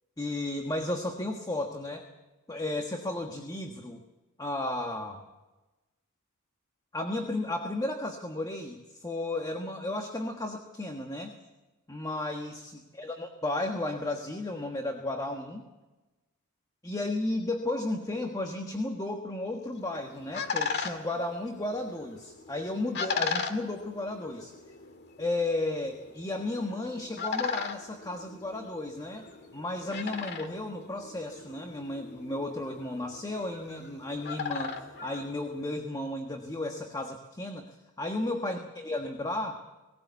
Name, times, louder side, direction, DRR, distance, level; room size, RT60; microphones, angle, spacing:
voice 1, 0.2-2.1 2.5-4.0 4.4-5.2 6.9-11.3 11.9-15.6 16.8-24.5 25.2-29.3 29.5-37.7 38.0-39.6, left 2 dB, 15° left, 4 dB, 1.3 m, -34 dB
sound 1, 19.7-35.9, left 5 dB, 50° left, 1.8 m, -38 dB
18.5 x 18.0 x 8.3 m, 1.1 s
head